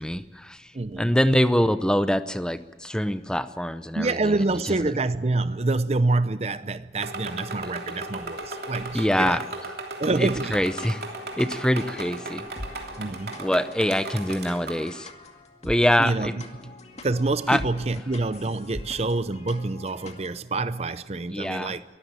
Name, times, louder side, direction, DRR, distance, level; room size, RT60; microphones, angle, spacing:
voice 1, 0.0-0.7 1.0-4.3 4.6-4.7 8.9-9.4 10.2-11.0 11.4-12.4 13.4-15.1 15.6-16.3 17.5-17.6 21.3-21.7, equal, 5° left, 0.7 m, -24 dB
voice 2, 0.7-1.1 3.9-9.4 10.0-10.6 13.0-13.3 16.0-16.3 16.6-16.7 17.0-21.8, right 2 dB, 35° right, 0.6 m, -26 dB
sound 1, 7.0-14.9, right 2 dB, 60° right, 3.1 m, -36 dB
sound 2, 10.5-20.3, left 1 dB, 40° left, 2.2 m, -43 dB
23.0 x 14.5 x 9.0 m
head